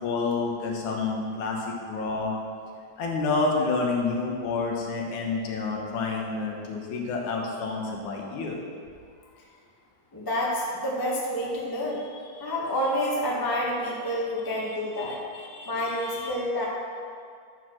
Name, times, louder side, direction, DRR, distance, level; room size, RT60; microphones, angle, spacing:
voice 1, 0.0-2.3 3.0-8.6 12.4-12.5 14.5-16.3, left 3 dB, 75° left, -1 dB, 2.6 m, -29 dB
voice 2, 10.1-12.0 12.4-15.2 15.6-16.6, equal, 25° left, -5 dB, 0.5 m, -28 dB
11.5 x 4.6 x 6.2 m, 2.2 s
omnidirectional pair, 3.5 m